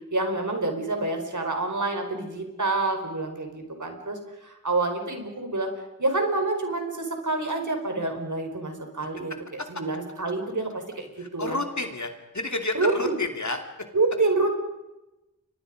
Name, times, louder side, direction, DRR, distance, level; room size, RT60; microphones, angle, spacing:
voice 1, 0.1-5.7 6.0-11.1 11.3-11.6 12.7-13.2 13.9-14.5, right 2 dB, 65° right, 4 dB, 4.8 m, -27 dB
voice 2, 11.2-13.6, left 2 dB, 60° left, 5 dB, 3.0 m, -30 dB
30.0 x 24.5 x 5.2 m, 0.98 s
wide cardioid pair, 45°, 32 cm